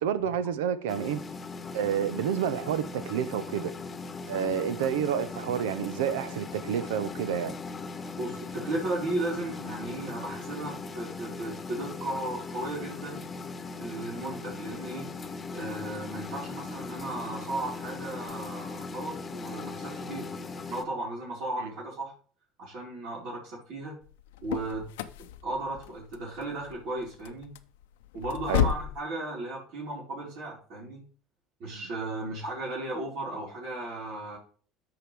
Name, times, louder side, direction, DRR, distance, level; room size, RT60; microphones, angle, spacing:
voice 1, 0.0-1.2 1.7-3.7 4.3-7.6 21.6-21.7 28.5-28.7, right 8 dB, 85° right, 0.8 m, -29 dB
sound 1, 0.9-20.8, left 4 dB, 25° left, 1.2 m, -39 dB
voice 2, 8.2-13.2 13.8-15.1 15.5-20.3 20.7-22.1 22.6-24.0 24.4-24.9 25.4-27.5 28.1-31.0 31.6-34.4, right 2 dB, 60° right, 4.4 m, -35 dB
sound 2, 24.0-29.0, left 11 dB, 85° left, 0.7 m, -33 dB
13.5 x 4.9 x 3.5 m
supercardioid pair, 85°, 0 cm